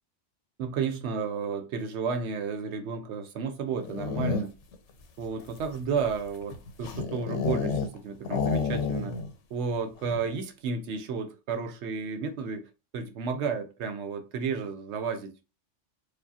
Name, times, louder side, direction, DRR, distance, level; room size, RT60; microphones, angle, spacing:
voice 1, 0.6-4.5 5.2-9.2 9.5-12.6 12.9-15.5, right 5 dB, 70° right, 0.8 m, -32 dB
sound 1, 3.7-4.7 5.4-8.0 8.2-9.3 9.6-9.7 10.0-10.4, left 4 dB, 75° left, 1.0 m, -30 dB
4.6 x 2.4 x 2.7 m
omnidirectional pair, 1.3 m